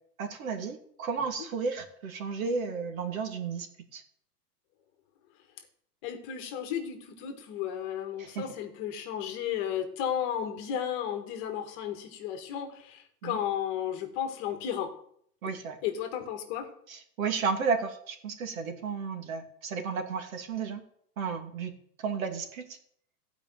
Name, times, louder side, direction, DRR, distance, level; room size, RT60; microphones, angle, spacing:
voice 1, 0.2-4.0 8.2-8.5 13.2-13.4 15.4-15.8 16.9-20.8 21.2-22.8, right 5 dB, 60° right, 5 dB, 2.5 m, -33 dB
voice 2, 6.0-14.9 15.8-16.7, left 9 dB, 25° left, 6 dB, 1.5 m, -33 dB
15.5 x 5.2 x 9.1 m, 0.66 s
supercardioid pair, 165°, 46 cm